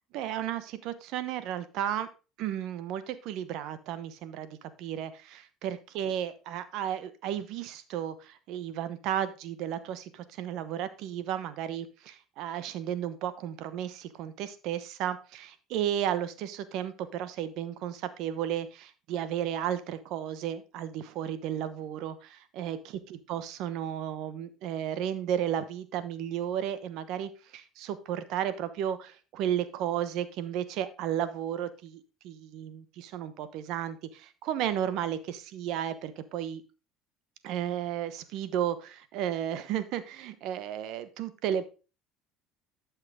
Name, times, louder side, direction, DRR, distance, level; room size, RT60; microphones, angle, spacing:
voice 1, 0.1-2.1 2.4-22.8 23.1-36.6 37.4-41.7, right 10 dB, 70° right, 13 dB, 1.0 m, -33 dB
11.5 x 5.8 x 3.6 m, 0.32 s
supercardioid pair, 85°, 0 cm